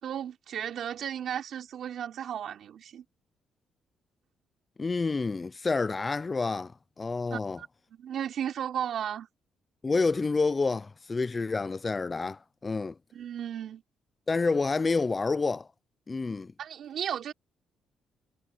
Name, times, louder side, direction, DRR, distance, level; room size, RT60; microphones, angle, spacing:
voice 1, 0.0-3.0 7.3-9.3 13.1-13.8 16.6-17.3, right 9 dB, 65° right, 3.8 m, -35 dB
voice 2, 4.8-7.6 9.8-13.0 14.3-15.7 16.1-16.5, left 4 dB, 30° left, 0.4 m, -28 dB
cardioid pair, 90°, 0 cm